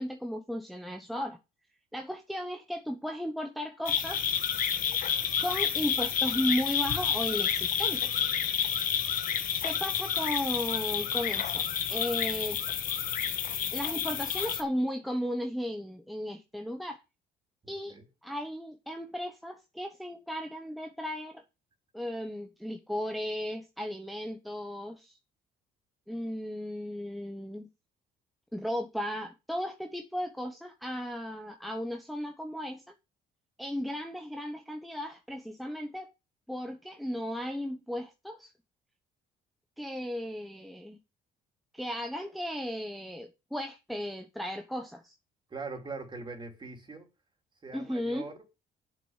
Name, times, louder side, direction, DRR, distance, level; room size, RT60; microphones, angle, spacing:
voice 1, 0.0-1.4 1.9-4.3 5.4-8.2 9.6-12.6 13.7-17.0 17.7-18.0 18.2-21.4 21.9-25.2 26.1-27.7 28.5-32.8 33.6-36.1 36.5-38.5 39.8-41.0 41.7-45.1 47.7-48.3, equal, ahead, 1.0 m, -35 dB
sound 1, 3.8-14.6, left 8 dB, 55° left, 1.3 m, -30 dB
voice 2, 17.6-18.0 45.5-47.1 47.6-48.5, right 3 dB, 30° right, 3.4 m, -42 dB
7.6 x 6.2 x 7.3 m
cardioid pair, 110°, 17 cm